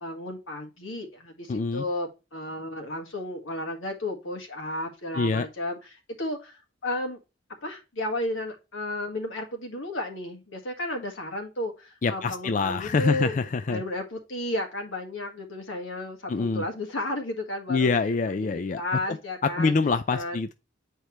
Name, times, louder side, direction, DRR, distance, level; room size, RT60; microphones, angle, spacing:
voice 1, 0.0-7.2 7.6-17.9 18.4-19.7 20.1-20.4, left 1 dB, 90° left, 1.7 m, -33 dB
voice 2, 1.5-1.8 5.1-5.5 12.0-13.8 16.3-16.6 17.7-18.8 19.1-19.2 19.6-20.5, left 4 dB, 40° left, 0.4 m, -25 dB
8.3 x 4.5 x 3.1 m
head